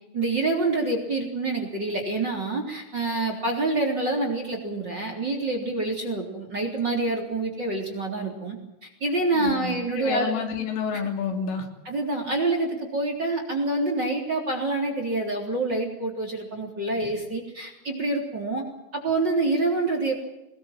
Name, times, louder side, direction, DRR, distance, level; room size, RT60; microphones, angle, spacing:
voice 1, 0.1-8.6 8.8-10.3 11.9-18.6 18.9-20.1, right 2 dB, 25° right, 3 dB, 3.6 m, -27 dB
voice 2, 9.3-11.7, left 6 dB, 80° left, 4 dB, 5.6 m, -29 dB
23.5 x 20.5 x 7.6 m, 0.95 s
omnidirectional pair, 5.6 m